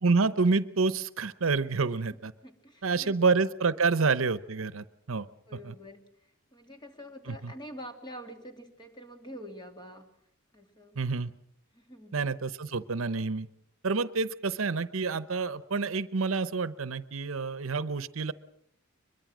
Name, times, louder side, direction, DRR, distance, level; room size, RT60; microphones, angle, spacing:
voice 1, 0.0-2.3 2.8-5.3 5.6-5.7 7.3-7.5 11.0-11.3 12.1-13.5 13.8-18.3, right 4 dB, 75° right, 15 dB, 0.8 m, -28 dB
voice 2, 2.4-3.2 3.9-4.0 5.5-6.0 6.5-10.1 10.5-11.0 11.7-12.2, equal, 20° left, 4 dB, 2.7 m, -46 dB
23.0 x 22.0 x 6.2 m, 0.69 s
head